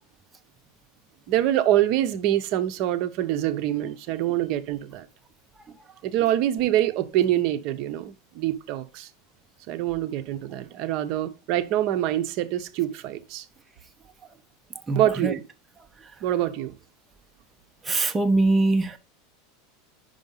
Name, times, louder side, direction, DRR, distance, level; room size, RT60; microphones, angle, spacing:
voice 1, 1.3-5.1 6.0-9.1 9.7-13.4 15.0-15.5 16.2-16.7, right 12 dB, 50° right, 0.8 m, -25 dB
voice 2, 14.9-15.3 17.9-19.0, right 2 dB, 15° right, 0.6 m, -22 dB
5.6 x 5.2 x 5.3 m
supercardioid pair, 140°, 0 cm